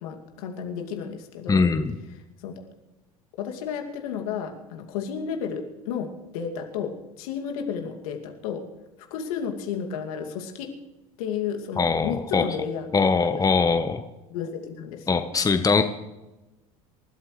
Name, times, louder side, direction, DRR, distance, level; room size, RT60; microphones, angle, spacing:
voice 1, 0.0-1.6 2.4-2.7 3.4-8.7 9.1-10.7 11.2-12.9 13.2-13.4 14.3-15.2, left 7 dB, 70° left, 3 dB, 2.4 m, -32 dB
voice 2, 1.5-1.9 11.8-12.5 12.9-14.0 15.1-15.8, left 4 dB, 20° left, 8 dB, 1.1 m, -21 dB
27.5 x 13.0 x 3.3 m, 1.0 s
hypercardioid pair, 80°, 19 cm